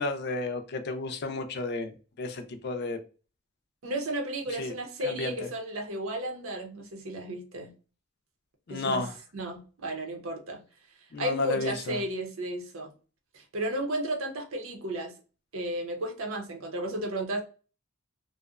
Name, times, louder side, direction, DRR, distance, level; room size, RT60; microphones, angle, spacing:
voice 1, 0.0-1.9 2.2-3.0 4.6-4.7 5.0-5.5 8.7-9.1 11.1-12.0, left 3 dB, 55° left, 7 dB, 0.4 m, -32 dB
voice 2, 3.8-7.7 8.7-9.1 9.3-10.6 11.2-12.9 13.3-15.1 15.5-17.4, right 1 dB, 80° right, 3 dB, 0.7 m, -33 dB
2.6 x 2.0 x 2.4 m, 0.36 s
head